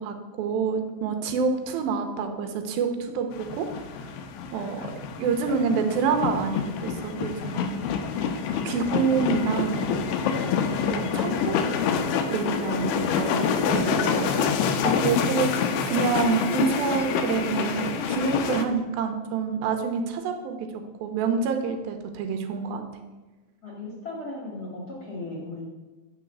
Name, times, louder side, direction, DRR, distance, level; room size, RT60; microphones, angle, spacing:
voice 1, 0.0-3.7 4.5-4.9 5.2-7.8 8.6-9.9 10.9-11.6 12.3-14.3 14.8-20.7 21.0-22.8, right 5 dB, 85° right, 5 dB, 2.5 m, -27 dB
sound 1, 3.3-18.7, left 6 dB, 90° left, 2.5 m, -27 dB
voice 2, 23.6-25.6, left 2 dB, 35° left, -5 dB, 1.6 m, -38 dB
9.6 x 3.9 x 7.0 m, 1.2 s
omnidirectional pair, 4.2 m